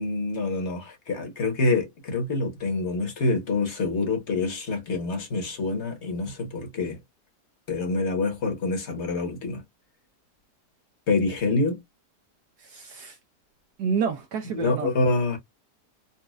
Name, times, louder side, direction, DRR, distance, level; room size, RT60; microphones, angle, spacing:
voice 1, 0.0-7.0 7.7-9.6 11.1-11.8 14.5-15.4, left 3 dB, 45° left, 1.3 m, -26 dB
voice 2, 12.6-13.2 13.8-14.9, right 6 dB, 75° right, 1.1 m, -29 dB
4.2 x 2.3 x 2.3 m
omnidirectional pair, 1.8 m